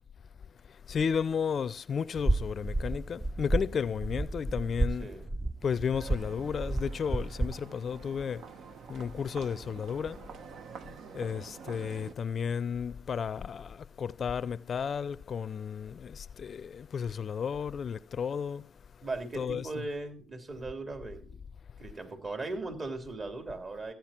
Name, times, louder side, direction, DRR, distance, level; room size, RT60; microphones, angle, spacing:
voice 1, 0.9-5.1 5.6-8.4 8.9-10.2 11.1-18.6 19.3-19.9, left 7 dB, 50° left, 0.5 m, -33 dB
sound 1, 2.2-7.5, right 2 dB, 20° right, 0.6 m, -32 dB
voice 2, 5.0-5.3 19.0-21.4 21.8-23.9, right 2 dB, 40° right, 3.6 m, -38 dB
sound 2, 5.9-12.1, right 6 dB, 65° right, 1.0 m, -47 dB
15.0 x 9.2 x 4.5 m
supercardioid pair, 65°, 0 cm